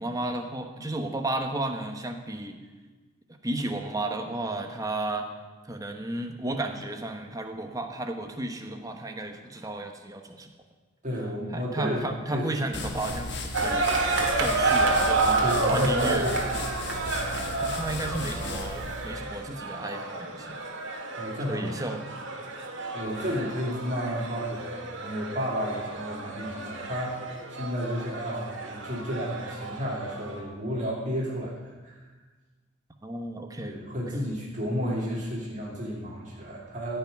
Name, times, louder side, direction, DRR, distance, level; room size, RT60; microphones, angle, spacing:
voice 1, 0.0-2.6 3.4-5.3 5.6-10.5 11.5-13.9 14.4-16.4 17.6-20.6 21.5-22.0 33.0-33.8 34.1-34.2, right 1 dB, 15° right, 5 dB, 1.0 m, -33 dB
voice 2, 11.0-12.5 15.2-17.2 21.2-21.7 22.9-32.1 33.6-37.0, equal, 35° right, -4 dB, 2.7 m, -32 dB
sound 1, 12.7-19.2, left 2 dB, 55° left, 1.5 m, -35 dB
sound 2, 13.5-30.4, right 3 dB, 60° right, 1.7 m, -30 dB
15.0 x 5.9 x 9.1 m, 1.3 s
head